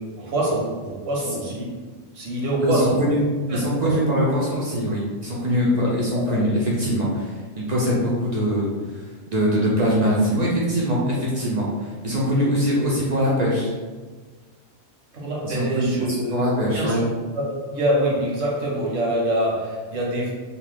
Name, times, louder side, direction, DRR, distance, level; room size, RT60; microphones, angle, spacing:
voice 1, 0.2-1.8 2.1-3.1 3.5-4.0 5.7-6.4 15.1-17.1 17.3-20.3, right 1 dB, 80° right, -3 dB, 1.2 m, -25 dB
voice 2, 2.6-3.2 3.5-8.7 9.3-11.7 12.0-13.7 15.4-17.0, equal, 55° right, -5 dB, 0.5 m, -22 dB
2.7 x 2.2 x 3.2 m, 1.4 s
omnidirectional pair, 1.3 m